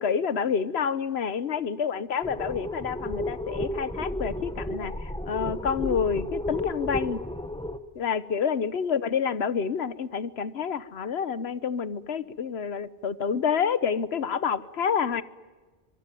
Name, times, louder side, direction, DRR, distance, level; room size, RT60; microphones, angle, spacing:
voice 1, 0.0-7.2 7.9-15.2, left 6 dB, 75° left, 16 dB, 1.3 m, -28 dB
sound 1, 2.2-7.8, left 1 dB, 5° left, 1.1 m, -33 dB
25.0 x 22.5 x 9.2 m, 1.3 s
omnidirectional pair, 1.1 m